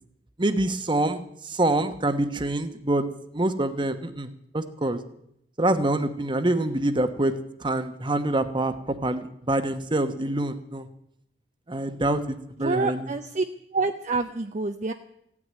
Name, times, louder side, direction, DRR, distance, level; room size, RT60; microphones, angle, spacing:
voice 1, 0.4-3.1 3.3-5.0 5.6-7.3 7.6-10.9 11.7-12.2 12.6-13.1, right 1 dB, 30° right, 10 dB, 1.1 m, -26 dB
voice 2, 12.6-13.4 13.7-14.9, right 3 dB, 45° right, 6 dB, 0.7 m, -27 dB
15.5 x 9.7 x 9.4 m, 0.76 s
head